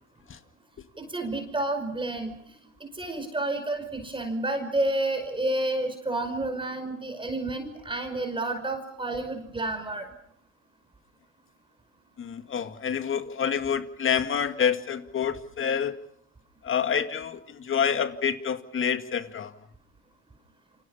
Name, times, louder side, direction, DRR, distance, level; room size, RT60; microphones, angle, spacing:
voice 1, 1.0-2.3 3.0-10.1, right 2 dB, 15° right, 5 dB, 5.3 m, -30 dB
voice 2, 12.2-15.9 16.6-19.5, left 7 dB, 35° left, 10 dB, 2.1 m, -27 dB
29.0 x 26.5 x 5.7 m, 0.67 s
supercardioid pair, 100°, 38 cm